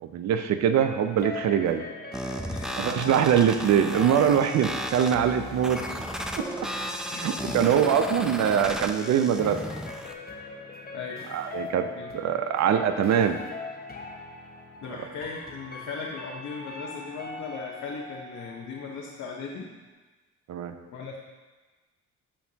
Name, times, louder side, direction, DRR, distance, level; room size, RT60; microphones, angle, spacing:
voice 1, 0.0-1.8 2.8-5.8 6.4-6.5 7.1-9.6 11.3-11.9 12.1-13.4 20.5-20.7, right 8 dB, 65° right, 9 dB, 0.6 m, -23 dB
sound 1, 0.7-19.4 19.7-19.8, left 3 dB, 30° left, 1.1 m, -41 dB
sound 2, 2.1-10.1, equal, ahead, 0.5 m, -35 dB
voice 2, 2.5-3.2 7.1-7.7 10.8-11.3 12.0-12.1 14.8-19.7 20.9-21.2, left 5 dB, 65° left, -2 dB, 1.0 m, -38 dB
12.5 x 4.5 x 2.8 m, 1.3 s
cardioid pair, 90°, 30 cm